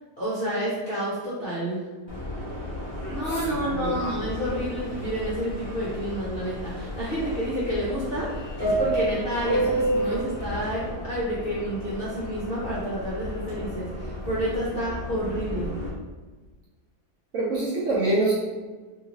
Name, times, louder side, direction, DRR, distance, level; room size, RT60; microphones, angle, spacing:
voice 1, 0.2-1.8 3.1-15.7, equal, 55° left, -8 dB, 0.6 m, -29 dB
Subway metro underground, 2.1-15.9, right 1 dB, 10° left, 1.2 m, -32 dB
voice 2, 3.3-3.9 17.3-18.3, right 2 dB, 65° right, -5 dB, 0.8 m, -25 dB
2.9 x 2.7 x 2.9 m, 1.3 s
omnidirectional pair, 1.8 m